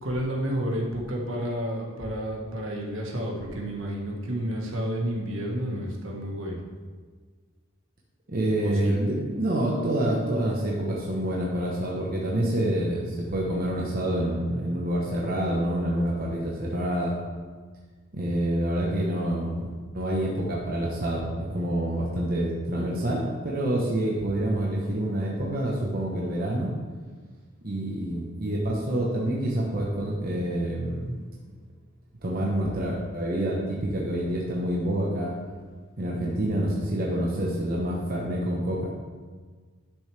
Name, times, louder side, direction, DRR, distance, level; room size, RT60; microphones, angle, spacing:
voice 1, 0.0-6.6 8.6-8.9, equal, 65° right, -1 dB, 1.6 m, -30 dB
voice 2, 8.3-17.2 18.1-19.7 19.9-26.7 27.6-31.2 32.2-35.3 36.0-38.9, right 1 dB, 45° right, -4 dB, 1.1 m, -27 dB
11.5 x 6.7 x 3.4 m, 1.5 s
head